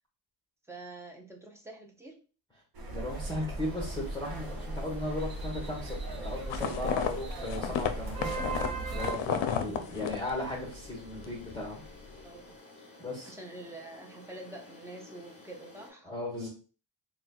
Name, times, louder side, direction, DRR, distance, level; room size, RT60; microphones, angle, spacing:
voice 1, 0.7-2.2 12.2-12.5 12.9-13.0 13.2-16.1, right 2 dB, 5° right, 1 dB, 0.5 m, -46 dB
sound 1, 2.7-9.1, right 2 dB, 50° right, 0.7 m, -37 dB
voice 2, 2.9-4.5 4.7-8.3 8.9-11.8 13.0-13.3 16.0-16.5, left 1 dB, 10° left, -4 dB, 0.9 m, -36 dB
sound 2, 3.6-15.9, left 2 dB, 25° left, 1.5 m, -52 dB
sound 3, 6.5-10.9 11.1-11.6, left 8 dB, 70° left, 0.6 m, -33 dB
4.2 x 2.2 x 2.3 m, 0.37 s
wide cardioid pair, 140°, 47 cm